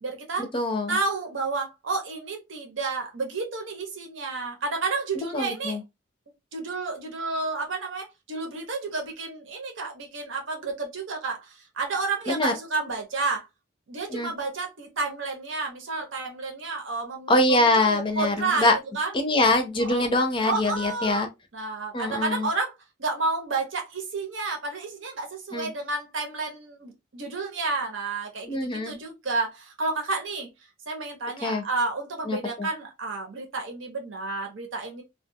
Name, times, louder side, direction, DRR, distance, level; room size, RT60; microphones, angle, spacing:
voice 1, 0.0-0.5 0.9-5.8 6.5-13.5 13.9-18.7 18.9-19.1 19.8-20.1 20.4-22.7 23.0-30.5 30.9-35.0, right 3 dB, 75° right, 0.8 m, -31 dB
voice 2, 0.5-1.0 5.3-5.8 12.3-12.5 14.1-14.3 17.3-18.8 19.1-21.3 21.9-22.5 25.5-25.7 28.5-28.9 31.4-31.6 32.3-32.7, left 2 dB, 25° left, 0.5 m, -24 dB
2.3 x 2.3 x 2.7 m
head